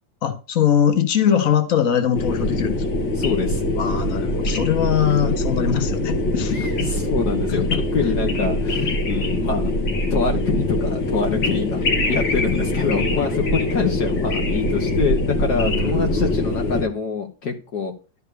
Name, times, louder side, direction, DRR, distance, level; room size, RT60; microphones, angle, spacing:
voice 1, 0.2-3.0 3.8-6.6 7.5-7.8 15.5-16.3, left 8 dB, 50° left, 1.7 m, -22 dB
sound 1, 2.2-16.8, left 1 dB, 80° left, 2.6 m, -23 dB
voice 2, 3.2-3.6 6.6-7.6 7.9-9.7 10.1-11.8 12.1-17.9, left 5 dB, 65° left, 1.8 m, -25 dB
12.0 x 4.7 x 6.8 m
omnidirectional pair, 2.0 m